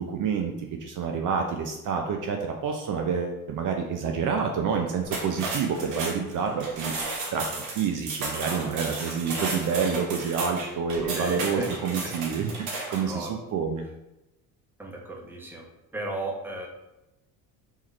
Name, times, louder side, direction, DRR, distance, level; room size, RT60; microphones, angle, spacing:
voice 1, 0.0-13.8, right 6 dB, 45° right, 2 dB, 0.6 m, -28 dB
sound 1, 5.0-13.1, right 3 dB, 75° right, 1.2 m, -34 dB
voice 2, 8.4-8.8 10.9-11.7 12.0-12.1 12.7-13.4 14.8-15.6 15.9-16.7, right 2 dB, 5° right, 0 dB, 0.8 m, -36 dB
3.6 x 3.2 x 3.1 m, 0.93 s
hypercardioid pair, 75°, 42 cm